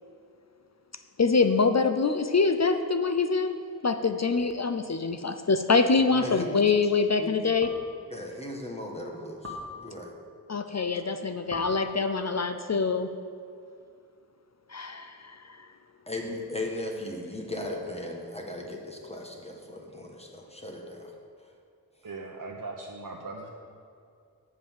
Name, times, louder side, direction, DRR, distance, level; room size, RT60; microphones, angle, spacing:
voice 1, 1.2-3.6 3.8-7.7 10.5-13.1 14.7-15.7, left 4 dB, 45° left, 8 dB, 0.5 m, -25 dB
sound 1, 4.4-4.5 6.0-6.4 7.6-8.2 9.4-10.2 11.5-12.4, left 3 dB, 40° right, 1.4 m, -41 dB
voice 2, 6.1-6.5 7.2-7.3 8.1-10.1 16.1-21.1, left 1 dB, 15° left, 0 dB, 1.4 m, -37 dB
voice 3, 22.0-23.5, right 3 dB, 60° right, 0 dB, 0.8 m, -39 dB
7.8 x 5.2 x 7.4 m, 2.4 s
wide cardioid pair, 50°, 37 cm